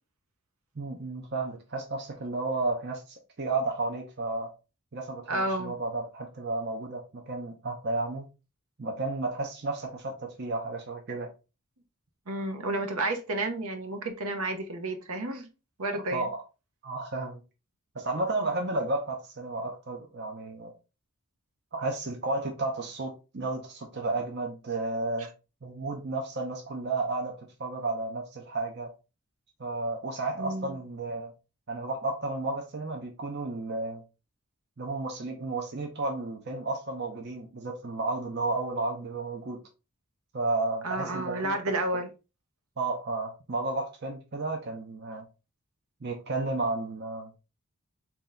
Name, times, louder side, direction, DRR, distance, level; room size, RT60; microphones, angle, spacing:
voice 1, 0.8-4.5 4.9-8.3 8.8-11.3 16.1-16.4 16.8-17.4 17.9-20.7 21.7-25.3 25.6-28.9 29.6-31.3 31.7-34.0 34.8-39.6 40.3-41.6 42.8-45.3 46.0-47.3, right 2 dB, 50° right, 0.7 m, -32 dB
voice 2, 5.3-5.8 12.3-15.5 15.8-16.3 25.2-25.3 30.4-30.8 40.8-42.1, right 2 dB, 75° right, 0.9 m, -31 dB
3.8 x 2.9 x 3.9 m
head